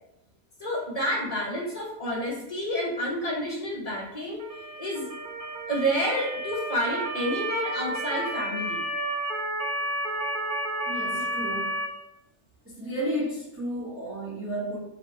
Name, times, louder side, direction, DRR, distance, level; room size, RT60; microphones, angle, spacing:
voice 1, 0.6-4.4 4.8-5.1 5.7-8.8 11.2-11.3, equal, 30° left, -4 dB, 0.8 m, -29 dB
Motor vehicle (road) / Siren, 4.4-11.9, right 1 dB, 90° right, 0.4 m, -31 dB
voice 2, 10.9-11.8 12.6-14.8, equal, 10° right, -8 dB, 0.9 m, -32 dB
4.1 x 2.3 x 4.2 m, 0.87 s
omnidirectional pair, 1.7 m